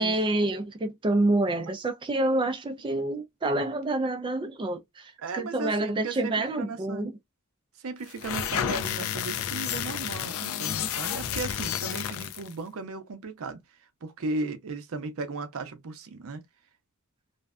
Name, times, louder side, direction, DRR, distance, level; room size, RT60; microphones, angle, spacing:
voice 1, 0.0-7.1, right 2 dB, 20° right, 0.4 m, -27 dB
voice 2, 5.2-7.1 7.8-13.6 14.0-16.4, right 3 dB, 65° right, 0.6 m, -36 dB
sound 1, 8.1-12.5, left 9 dB, 65° left, 0.4 m, -31 dB
2.5 x 2.1 x 2.3 m
head